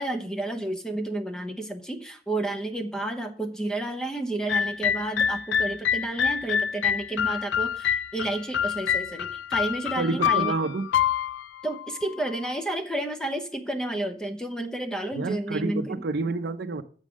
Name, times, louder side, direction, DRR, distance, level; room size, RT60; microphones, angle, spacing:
voice 1, 0.0-10.5 11.6-16.0, right 1 dB, 5° left, 0.8 m, -31 dB
sound 1, 4.5-12.5, left 8 dB, 75° left, 0.3 m, -27 dB
voice 2, 10.0-10.9 15.1-16.8, right 3 dB, 65° right, 0.6 m, -28 dB
7.4 x 5.3 x 6.2 m
head